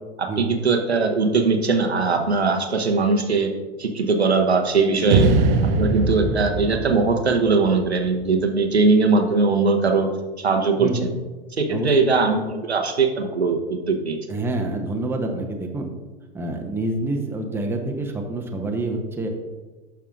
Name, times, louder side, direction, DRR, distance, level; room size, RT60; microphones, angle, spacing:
voice 1, 0.2-3.5 3.8-5.3 5.8-10.1 10.4-11.1 11.6-14.2, right 4 dB, 80° right, 4 dB, 0.9 m, -20 dB
sound 1, 5.1-8.3, right 3 dB, 40° right, 0.7 m, -22 dB
voice 2, 14.3-15.9 16.3-19.3, right 2 dB, 5° right, 2 dB, 0.8 m, -27 dB
12.0 x 5.6 x 2.5 m, 1.2 s
figure-of-eight pair, 90°, 32 cm